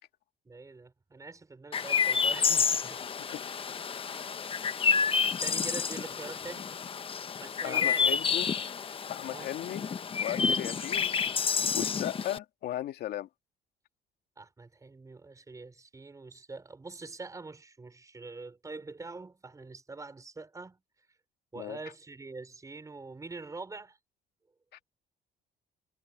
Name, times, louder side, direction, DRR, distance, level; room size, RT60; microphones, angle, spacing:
voice 1, 0.4-3.1 4.8-6.7 7.4-8.1 9.2-9.5 14.4-20.8 21.5-24.0, right 3 dB, 20° right, 5.0 m, -44 dB
Chirp tweet, 1.7-12.4, left 6 dB, 30° left, 0.9 m, -29 dB
voice 2, 7.6-8.6 9.1-9.9 10.2-13.3 21.6-21.8, left 12 dB, 70° left, 2.2 m, -37 dB
cardioid pair, 110°, 17 cm